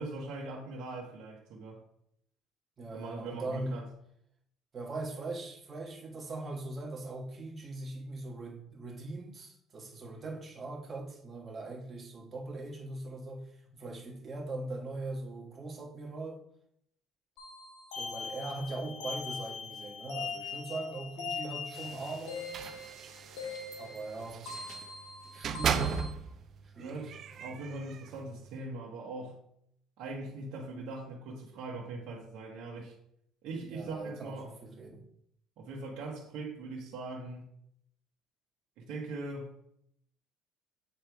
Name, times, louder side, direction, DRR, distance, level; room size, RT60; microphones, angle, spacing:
voice 1, 0.0-1.8 2.9-3.9 26.8-29.4 30.0-32.9 33.4-34.5 34.9-35.0 35.6-37.5 38.8-39.5, right 2 dB, 70° right, 1.3 m, -41 dB
voice 2, 2.8-3.8 4.7-13.5 13.7-16.4 17.9-22.5 23.8-24.5 25.3-26.0 26.7-27.1 33.7-35.0, right 2 dB, 25° right, 1.5 m, -40 dB
sound 1, 17.4-26.1, left 4 dB, 85° left, 1.7 m, -41 dB
sound 2, 21.7-24.9 25.4-26.4 26.8-28.2, right 7 dB, 45° right, 0.4 m, -36 dB
8.1 x 3.3 x 4.6 m
cardioid pair, 145°, 0 cm